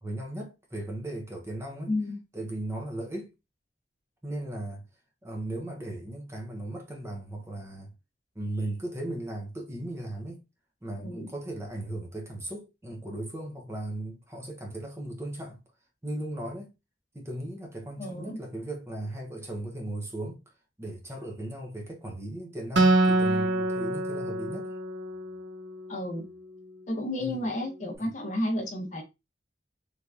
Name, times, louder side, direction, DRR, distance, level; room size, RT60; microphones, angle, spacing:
voice 1, 0.0-1.9 2.3-3.3 4.2-4.9 5.2-7.9 8.4-10.4 10.8-15.6 16.0-16.7 17.1-20.4 20.8-24.7 27.2-27.4 28.0-28.1, right 1 dB, 15° right, 0.7 m, -37 dB
voice 2, 1.9-2.2 11.0-11.3 18.0-18.4 25.9-26.3 26.9-29.0, left 1 dB, 45° left, 0.8 m, -32 dB
Acoustic guitar, 22.8-26.2, right 2 dB, 75° right, 0.6 m, -26 dB
3.3 x 2.7 x 2.4 m
head